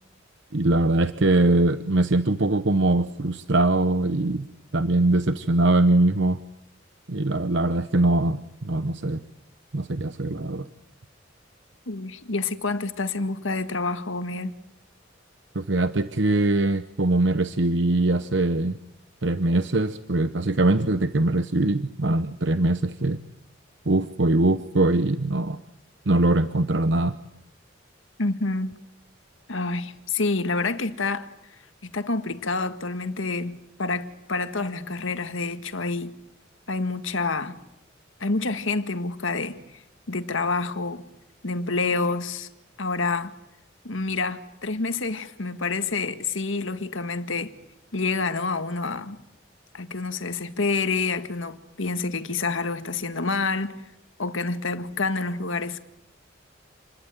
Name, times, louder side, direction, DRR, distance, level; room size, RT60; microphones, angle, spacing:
voice 1, 0.5-4.5 4.7-6.4 7.1-9.2 9.7-10.7 15.5-18.8 19.2-23.2 23.9-25.6 26.1-27.1, right 2 dB, 65° right, 0.9 m, -22 dB
voice 2, 11.9-14.5 28.2-28.7 29.5-31.3 31.8-36.1 36.7-37.6 38.2-39.8 40.1-41.1 41.4-42.5 42.8-43.3 43.8-47.5 47.9-49.2 49.7-53.7 54.2-55.8, left 3 dB, 85° left, 1.8 m, -28 dB
28.5 x 21.0 x 9.2 m
head